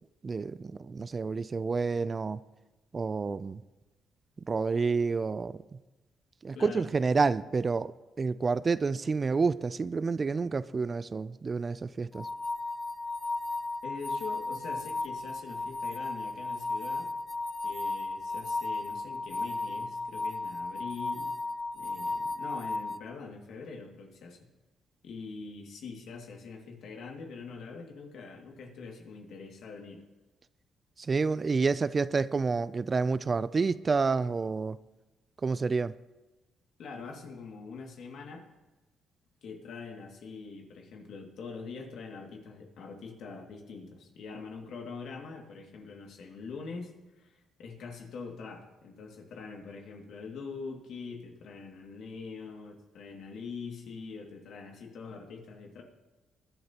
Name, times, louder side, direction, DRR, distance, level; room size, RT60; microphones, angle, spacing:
voice 1, 0.2-2.4 2.9-3.6 4.5-5.6 6.4-12.3 31.0-34.8 35.4-35.9, right 4 dB, 35° right, 0.4 m, -29 dB
voice 2, 6.5-6.9 13.8-17.1 17.6-21.3 21.7-24.4 25.0-30.0 36.8-38.5 39.4-55.8, left 4 dB, 70° left, 2.2 m, -44 dB
sound 1, 12.1-23.0, left 3 dB, 20° left, 0.5 m, -35 dB
20.5 x 11.0 x 2.9 m
cardioid pair, 90°, 0 cm